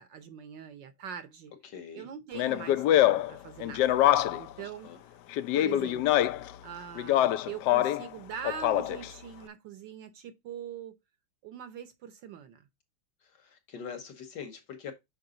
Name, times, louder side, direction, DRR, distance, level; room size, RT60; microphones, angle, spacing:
voice 1, 0.0-1.5 1.9-4.9 5.5-6.3 6.6-11.0 11.4-12.7, right 8 dB, 65° right, 1.2 m, -43 dB
voice 2, 1.6-2.1 4.6-5.0 13.2-14.9, left 7 dB, 60° left, 1.5 m, -43 dB
Speech, 2.3-4.5 5.3-6.5 7.0-8.1 8.4-9.1, left 13 dB, 85° left, 0.9 m, -25 dB
6.7 x 4.7 x 3.8 m
omnidirectional pair, 2.4 m